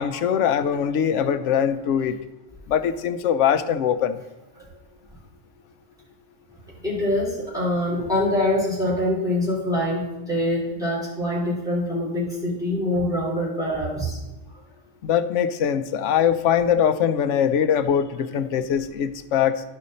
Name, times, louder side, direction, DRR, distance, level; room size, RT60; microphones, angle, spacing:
voice 1, 0.0-2.2 2.7-4.2 15.0-19.6, left 8 dB, 80° left, 12 dB, 0.9 m, -22 dB
voice 2, 6.8-14.2, left 1 dB, 5° right, -6 dB, 3.1 m, -24 dB
12.5 x 5.1 x 4.1 m, 1.0 s
omnidirectional pair, 1.3 m